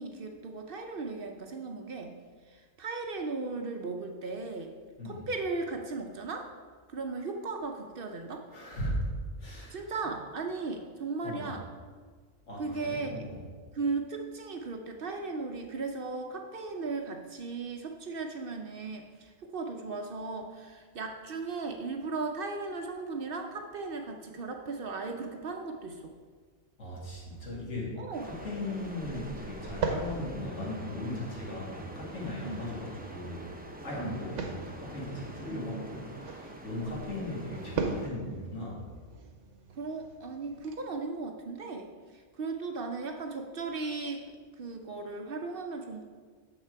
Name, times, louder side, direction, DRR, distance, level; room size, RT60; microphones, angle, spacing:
voice 1, 0.0-2.1 2.5-4.7 5.0-6.5 6.9-8.5 9.7-11.7 12.6-13.3 13.7-26.1 28.0-28.3 32.4-32.7 34.0-34.2 35.5-35.9 36.8-37.2 39.7-44.3 44.6-46.1, right 3 dB, 55° right, 4 dB, 0.7 m, -37 dB
voice 2, 8.5-9.1 9.4-9.8 11.2-11.6 12.5-13.4 26.8-27.9 28.2-33.4 33.8-36.1 36.6-38.8, left 1 dB, 75° left, -5 dB, 2.3 m, -37 dB
sound 1, 28.1-38.1, right 1 dB, 15° right, 0.4 m, -45 dB
sound 2, 28.4-40.7, right 4 dB, 80° right, 1.1 m, -41 dB
7.2 x 5.9 x 4.5 m, 1.5 s
omnidirectional pair, 1.2 m